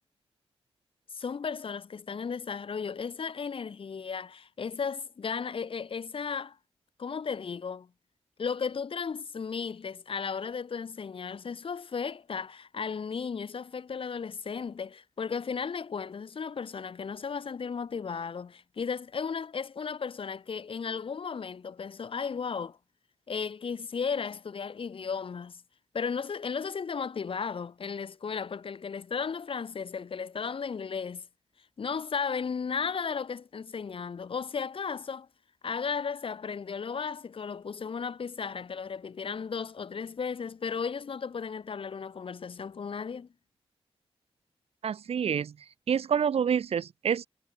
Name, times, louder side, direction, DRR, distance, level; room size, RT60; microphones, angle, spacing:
voice 1, 1.1-6.6 7.0-7.9 8.4-22.8 23.3-25.6 25.9-31.3 31.8-35.3 35.6-43.3, left 6 dB, 60° left, 6.3 m, -35 dB
voice 2, 44.8-45.5 45.9-47.3, right 7 dB, 85° right, 1.8 m, -27 dB
wide cardioid pair, 100°, 10 cm